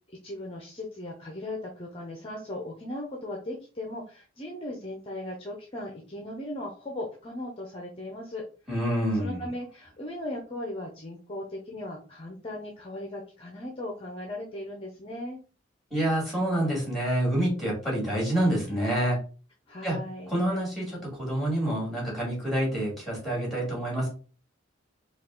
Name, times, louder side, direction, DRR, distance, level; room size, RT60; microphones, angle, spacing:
voice 1, 0.2-8.4 9.1-15.4 19.7-20.3, left 1 dB, 30° left, -1 dB, 0.7 m, -37 dB
voice 2, 8.7-9.4 15.9-19.2 19.8-20.0 20.3-24.1, right 1 dB, ahead, -3 dB, 2.3 m, -27 dB
4.5 x 2.4 x 3.7 m, 0.37 s
head